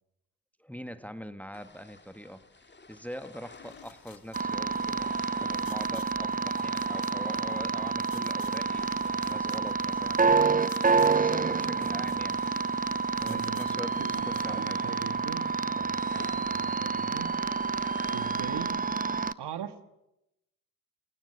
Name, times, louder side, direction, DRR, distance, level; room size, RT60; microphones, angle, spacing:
voice 1, 0.6-2.4 2.9-10.2 11.1-12.4 13.1-14.8, equal, 5° left, 10 dB, 1.7 m, -43 dB
sound 1, 1.5-18.7, left 3 dB, 25° left, 2.2 m, -52 dB
sound 2, 3.5-14.6, left 7 dB, 50° left, 2.2 m, -53 dB
sound 3, 4.3-19.3, right 5 dB, 20° right, 0.8 m, -28 dB
voice 2, 13.2-17.4 18.1-18.8 19.4-19.8, right 9 dB, 60° right, 11 dB, 1.8 m, -41 dB
27.5 x 17.5 x 8.5 m, 0.90 s
hypercardioid pair, 40°, 46 cm